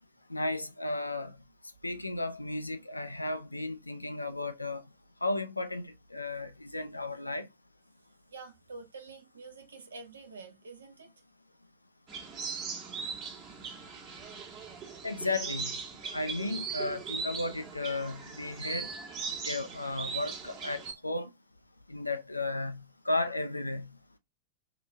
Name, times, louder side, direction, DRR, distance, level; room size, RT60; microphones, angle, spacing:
voice 1, 0.3-1.3 1.8-4.8 5.2-7.5 15.0-15.7 16.1-18.9 19.4-21.3 21.9-23.9, left 2 dB, 85° left, 0.4 m, -34 dB
voice 2, 8.3-11.1, right 4 dB, 70° right, 0.8 m, -47 dB
sound 1, 12.1-20.9, right 5 dB, 35° right, 1.2 m, -39 dB
2.8 x 2.6 x 3.1 m
figure-of-eight pair, 90°, 0 cm